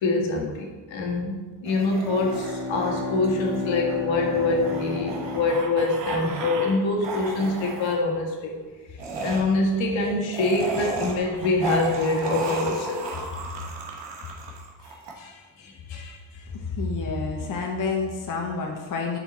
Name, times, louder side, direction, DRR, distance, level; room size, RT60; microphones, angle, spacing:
voice 1, 0.0-8.6 9.2-13.0 15.2-16.2, left 2 dB, 70° left, 0 dB, 1.7 m, -25 dB
sound 1, 1.7-6.8 7.0-7.9 9.0-15.1, right 3 dB, 60° right, 1.6 m, -34 dB
Bowed string instrument, 1.9-6.5, left 2 dB, 5° right, 0.9 m, -33 dB
voice 2, 16.8-19.2, left 4 dB, 40° left, -1 dB, 1.1 m, -28 dB
7.0 x 5.8 x 4.2 m, 1.3 s
cardioid pair, 105°, 47 cm